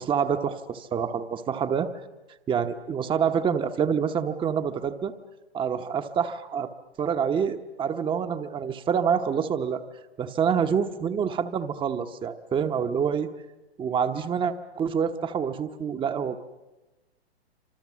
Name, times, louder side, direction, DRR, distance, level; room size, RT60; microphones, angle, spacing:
voice 1, 0.0-1.9 2.5-5.1 5.5-6.7 7.0-9.8 10.2-13.3 13.8-16.4, right 7 dB, 15° right, 8 dB, 0.9 m, -27 dB
28.5 x 26.0 x 7.4 m, 1.1 s
hypercardioid pair, 120°, 32 cm